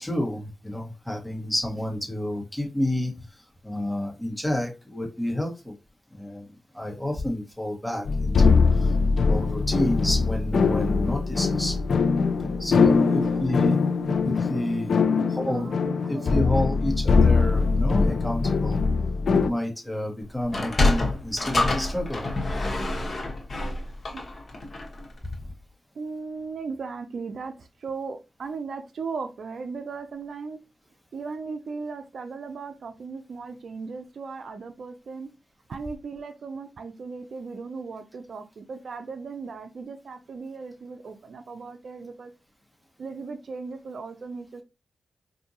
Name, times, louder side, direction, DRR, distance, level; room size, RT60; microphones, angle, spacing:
voice 1, 0.0-5.7 6.1-6.5 6.7-8.9 9.3-11.8 12.6-13.8 14.2-15.0 15.3-15.7 16.1-18.8 19.3-22.3, left 1 dB, 5° left, 1.6 m, -29 dB
sound 1, 8.0-19.5, left 4 dB, 70° left, 0.3 m, -22 dB
voice 2, 11.1-14.3 15.2-16.6 24.1-24.2 26.0-30.6 31.1-35.3 35.7-42.3 43.0-44.6, right 4 dB, 70° right, 0.4 m, -37 dB
Sliding door, 20.4-25.0, left 2 dB, 45° left, 1.0 m, -26 dB
4.4 x 2.6 x 2.8 m
cardioid pair, 60°, 0 cm